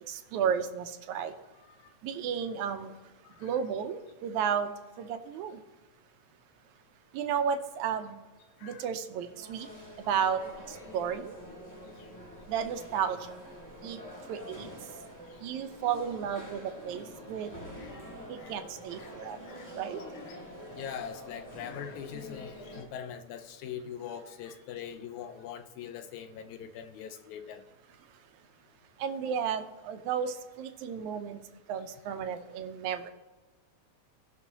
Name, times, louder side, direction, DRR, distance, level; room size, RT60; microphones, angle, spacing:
voice 1, 0.1-1.4 2.0-3.0 3.4-5.6 7.1-8.2 8.6-9.7 10.0-11.4 12.5-13.4 13.8-15.0 15.4-17.5 18.3-20.0 28.1-28.2 29.0-33.1, right 7 dB, 90° right, 2.1 m, -33 dB
sound 1, 9.2-22.8, equal, 10° left, 0.8 m, -46 dB
voice 2, 20.7-27.6, left 8 dB, 90° left, 2.1 m, -42 dB
18.0 x 6.1 x 2.8 m
omnidirectional pair, 3.3 m